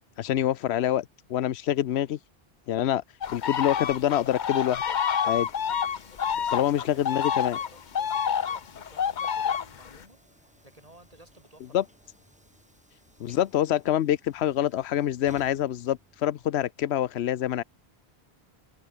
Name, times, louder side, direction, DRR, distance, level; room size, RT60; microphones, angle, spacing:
voice 1, 0.2-1.0 1.3-2.2 2.7-3.0 3.3-4.8 5.3-5.5 6.5-7.6 11.7-11.8 13.2-17.6, left 11 dB, 90° left, 0.9 m, -26 dB
sound 1, 3.2-10.0, left 8 dB, 50° left, 0.8 m, -28 dB
Train / Sliding door, 5.1-16.5, equal, 5° right, 4.8 m, -59 dB
voice 2, 6.3-11.9, right 1 dB, 35° right, 6.6 m, -54 dB
omnidirectional pair, 1.1 m